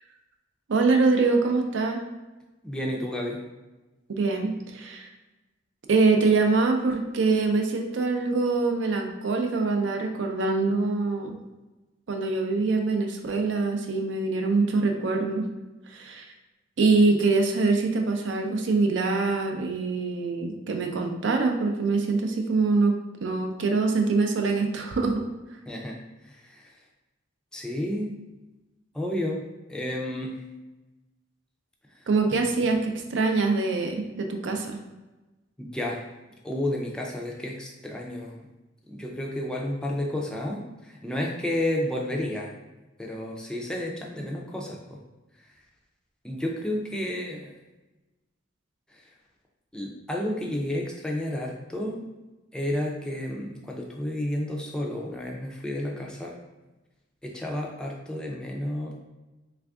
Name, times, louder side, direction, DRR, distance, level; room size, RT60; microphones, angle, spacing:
voice 1, 0.7-2.0 4.1-5.1 5.9-11.4 12.1-15.5 15.9-16.3 16.8-22.9 23.2-25.2 32.1-34.8, right 3 dB, 75° right, 3 dB, 0.5 m, -24 dB
voice 2, 2.6-3.4 25.7-26.8 27.5-28.1 28.9-30.4 31.9-32.1 35.6-36.1 36.4-38.4 38.9-42.5 43.0-45.0 45.4-45.5 46.2-47.5 48.9-49.1 49.7-52.0 52.5-56.3 57.2-59.0, left 1 dB, 5° left, -2 dB, 0.4 m, -31 dB
3.3 x 2.5 x 3.4 m, 1.1 s
head